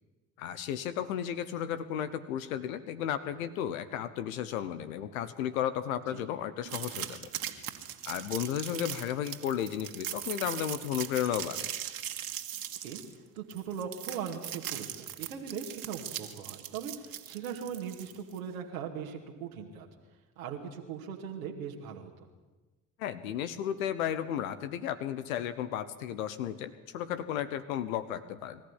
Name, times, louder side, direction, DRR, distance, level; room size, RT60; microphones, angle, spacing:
voice 1, 0.4-7.3 8.0-11.7 23.0-28.6, left 10 dB, 85° left, 12 dB, 1.1 m, -34 dB
sound 1, 6.7-18.4, right 11 dB, 60° right, 2.3 m, -40 dB
voice 2, 13.3-19.9 20.4-22.3, right 7 dB, 85° right, 0 dB, 2.4 m, -39 dB
25.0 x 14.0 x 9.9 m, 1.2 s
hypercardioid pair, 55°, 40 cm